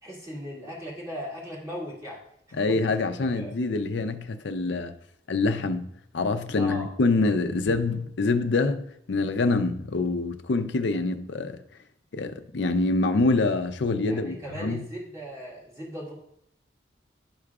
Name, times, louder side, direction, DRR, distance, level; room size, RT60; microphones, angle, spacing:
voice 1, 0.0-2.2 2.5-2.8 3.3-3.5 6.5-6.9 14.0-16.1, equal, 15° right, 2.2 m, -38 dB
voice 2, 2.6-4.9 5.3-5.9 6.1-11.6 12.1-14.9, left 3 dB, 75° left, 0.5 m, -25 dB
11.5 x 4.7 x 2.4 m
head